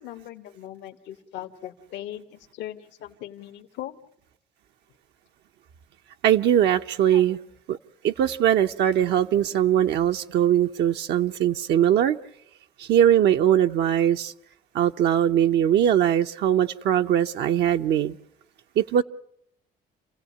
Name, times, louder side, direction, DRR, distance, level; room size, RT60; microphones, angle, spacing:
voice 1, 0.0-3.9 7.1-7.4, left 12 dB, 85° left, 1.5 m, -39 dB
voice 2, 6.2-7.4 7.7-7.8 8.0-12.2 12.8-14.3 14.7-18.2 18.8-19.0, right 10 dB, 75° right, 0.8 m, -21 dB
28.5 x 16.0 x 8.5 m
cardioid pair, 100°, 18 cm